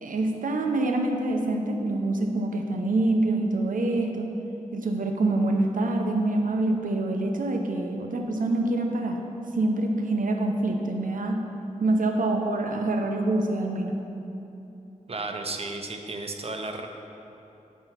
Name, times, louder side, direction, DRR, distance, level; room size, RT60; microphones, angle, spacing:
voice 1, 0.0-4.3 4.7-9.2 9.5-11.4 11.8-14.0, right 2 dB, 90° right, 3 dB, 0.7 m, -26 dB
voice 2, 15.1-16.9, right 3 dB, 50° right, 4 dB, 0.6 m, -33 dB
6.2 x 5.1 x 5.7 m, 2.9 s
wide cardioid pair, 90°, 14 cm